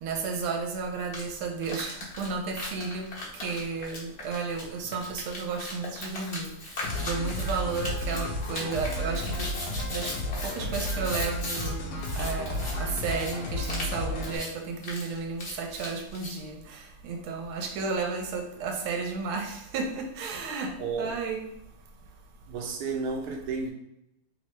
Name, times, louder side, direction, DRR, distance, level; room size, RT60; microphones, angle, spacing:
voice 1, 0.0-6.5 7.0-10.1 10.4-21.4, right 4 dB, 85° right, 3 dB, 1.5 m, -33 dB
sound 1, 1.0-1.2 1.6-11.7 12.0-12.7 13.1-13.3 13.6-13.9 14.2-14.5 14.8-16.4, left 2 dB, 45° left, 0.9 m, -38 dB
sound 2, 6.8-14.4, left 1 dB, 65° left, 1.0 m, -32 dB
voice 2, 22.5-23.7, right 4 dB, 65° right, 0 dB, 1.0 m, -32 dB
3.5 x 3.1 x 3.0 m, 0.82 s
omnidirectional pair, 2.4 m